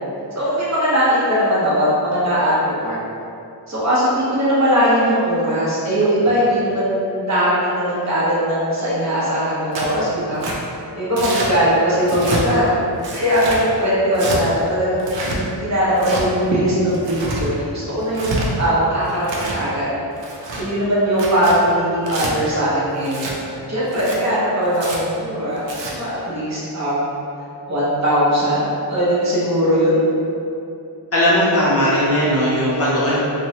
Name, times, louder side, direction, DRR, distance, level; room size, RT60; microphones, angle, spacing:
voice 1, 0.4-2.5 2.8-3.0 3.7-10.5 11.0-12.8 13.1-19.9 20.6-27.1 27.7-30.0, equal, 40° right, -8 dB, 0.6 m, -19 dB
Tearing, 9.7-10.0 10.4-10.6 11.2-11.5 12.0-12.4 13.0-13.6 14.1-14.4 15.0-15.4 16.0-16.2 16.9-17.4 18.0-18.5 19.1-19.6 20.2-20.6 21.1-21.6 22.0-22.3 23.0-23.3 23.9-24.2 24.7-25.0 25.6-25.9, right 2 dB, 90° right, 0.6 m, -27 dB
voice 2, 31.1-33.2, equal, 35° left, -9 dB, 0.5 m, -17 dB
2.9 x 2.0 x 2.7 m, 2.7 s
wide cardioid pair, 165°, 43 cm